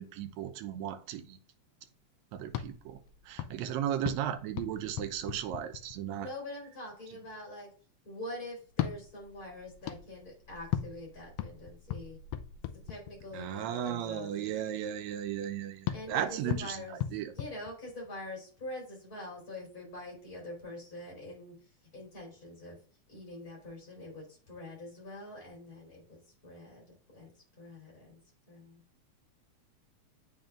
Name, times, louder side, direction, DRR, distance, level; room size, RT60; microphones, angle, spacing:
voice 1, 0.0-1.4 2.3-3.0 3.3-6.3 13.3-17.3, right 10 dB, 75° right, 1.9 m, -35 dB
sound 1, 2.4-6.3 8.6-13.5 15.8-18.3, left 11 dB, 80° left, 1.4 m, -39 dB
voice 2, 6.2-7.7 8.0-12.2 12.9-14.6 15.9-17.0 17.3-21.5 21.9-22.8 23.1-26.9 27.1-28.2 28.5-28.8, left 1 dB, 30° left, 4.2 m, -45 dB
8.9 x 5.3 x 2.5 m
omnidirectional pair, 3.4 m